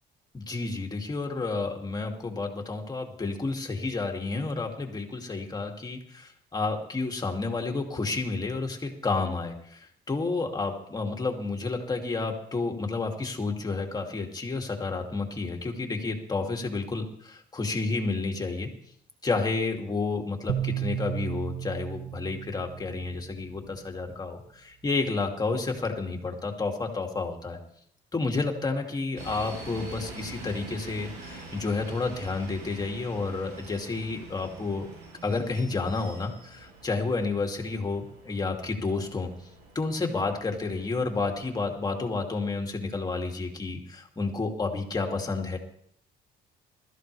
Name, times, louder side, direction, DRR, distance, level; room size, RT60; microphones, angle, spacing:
voice 1, 0.3-18.7 19.2-27.6 28.1-34.9 35.2-39.3 39.7-45.6, left 3 dB, 25° left, 2 dB, 2.6 m, -30 dB
sound 1, 20.5-23.8, right 11 dB, 70° right, 1.2 m, -34 dB
sound 2, 29.2-41.8, right 2 dB, 90° right, 6.8 m, -45 dB
22.0 x 14.0 x 3.4 m, 0.65 s
cardioid pair, 110°, 17 cm